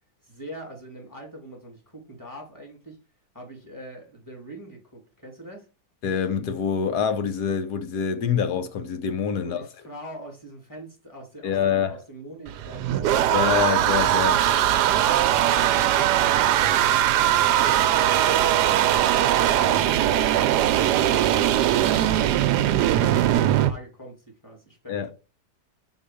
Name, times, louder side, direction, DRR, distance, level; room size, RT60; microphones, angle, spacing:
voice 1, 0.2-3.0 3.3-5.7 9.4-13.5 19.2-25.1, right 1 dB, 10° left, 2.5 m, -43 dB
voice 2, 6.0-9.7 11.4-11.9 13.3-14.4 24.9-25.1, left 7 dB, 65° left, 1.4 m, -25 dB
sound 1, 12.5-23.7, right 11 dB, 75° right, 1.1 m, -20 dB
5.6 x 4.2 x 5.0 m
omnidirectional pair, 1.9 m